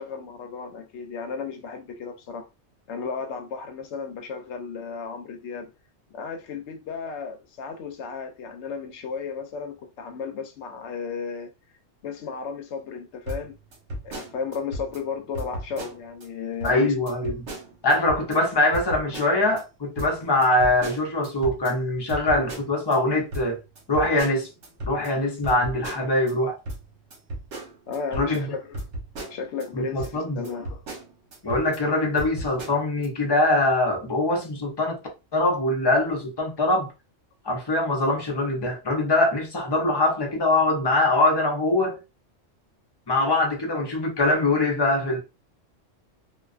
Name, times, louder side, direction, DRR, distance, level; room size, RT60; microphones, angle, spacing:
voice 1, 0.0-2.5 2.9-5.7 6.1-11.5 12.0-13.5 14.0-16.9 17.2-17.4 27.9-28.8 29.3-30.8, left 5 dB, 70° left, 0.8 m, -34 dB
sound 1, 13.3-15.0 15.3-16.3 16.6-16.8 17.1-18.4 18.7-19.6 20.0-23.0 23.3-26.3 26.7-29.7 30.0-30.1 30.4-31.8 32.2-33.1, right 1 dB, 70° right, 1.2 m, -36 dB
voice 2, 16.6-17.4 17.8-23.6 23.9-24.5 24.9-26.6 28.2-28.5 29.7-30.5 31.4-35.0 35.3-36.9 37.4-42.0 43.1-45.2, left 2 dB, 30° left, 0.5 m, -23 dB
2.4 x 2.3 x 2.3 m
omnidirectional pair, 1.3 m